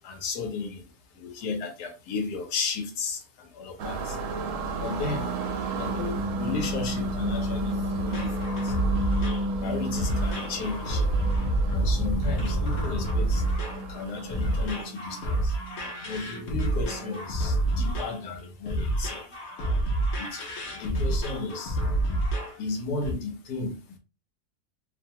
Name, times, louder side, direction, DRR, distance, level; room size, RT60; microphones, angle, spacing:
voice 1, 0.0-4.2 4.7-5.3 5.7-8.8 9.6-11.1 11.7-13.5 13.9-15.6 16.0-19.3 20.2-21.9 22.5-24.0, left 4 dB, 85° left, 1.3 m, -34 dB
sound 1, 3.8-14.8, right 3 dB, 70° right, 0.8 m, -35 dB
sound 2, 5.6-10.8 11.2-17.4, equal, 50° right, 0.3 m, -34 dB
sound 3, 8.1-22.6 23.0-23.1, right 1 dB, 55° left, 1.0 m, -28 dB
2.9 x 2.2 x 2.7 m
omnidirectional pair, 1.6 m